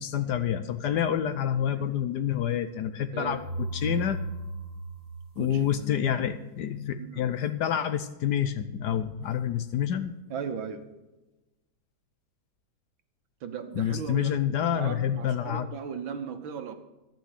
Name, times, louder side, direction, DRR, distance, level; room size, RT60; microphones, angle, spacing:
voice 1, 0.0-3.4 3.7-4.2 5.4-10.2 13.7-15.7, left 9 dB, 65° left, 11 dB, 1.1 m, -28 dB
sound 1, 3.2-6.1, right 1 dB, 25° right, 1.2 m, -36 dB
voice 2, 10.3-10.8 13.4-14.3 14.7-16.7, right 7 dB, 75° right, 8 dB, 1.9 m, -37 dB
12.0 x 9.1 x 6.6 m, 1.0 s
omnidirectional pair, 2.2 m